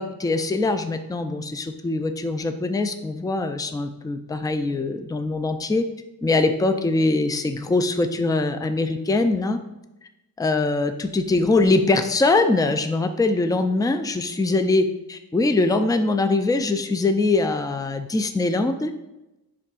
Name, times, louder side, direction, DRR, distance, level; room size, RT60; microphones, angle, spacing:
voice 1, 0.0-5.8 6.2-9.6 10.4-14.9 15.3-18.9, left 3 dB, 10° left, 8 dB, 0.4 m, -22 dB
10.0 x 3.7 x 2.5 m, 0.96 s
wide cardioid pair, 95°, 37 cm